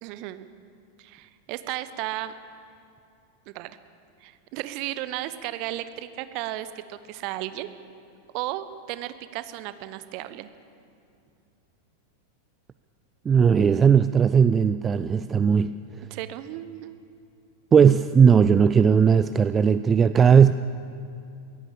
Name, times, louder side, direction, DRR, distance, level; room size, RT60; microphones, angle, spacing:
voice 1, 0.0-0.5 1.0-2.3 3.5-3.8 4.2-7.7 8.3-10.5 16.1-17.0, right 14 dB, 45° right, 13 dB, 1.0 m, -34 dB
voice 2, 13.3-15.8 17.7-20.5, right 7 dB, 20° right, 13 dB, 0.4 m, -17 dB
22.5 x 17.0 x 7.1 m, 2.6 s
figure-of-eight pair, 90°, 0 cm